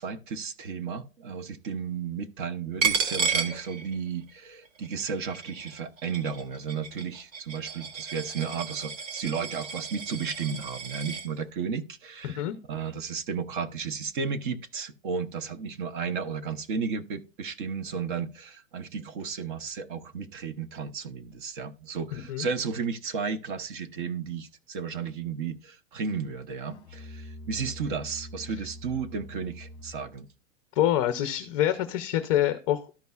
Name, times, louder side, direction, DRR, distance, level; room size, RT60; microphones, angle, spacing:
voice 1, 0.0-12.4 12.7-30.3, right 6 dB, 40° right, 0.8 m, -33 dB
Coin (dropping), 2.8-4.3 4.7-11.3, right 5 dB, 85° right, 1.7 m, -33 dB
voice 2, 12.2-12.6 22.3-22.5 30.8-33.0, left 12 dB, 25° left, 0.5 m, -26 dB
Musical instrument, 26.6-30.2, left 1 dB, 10° left, 1.5 m, -44 dB
13.0 x 5.3 x 2.3 m
hypercardioid pair, 160°, 38 cm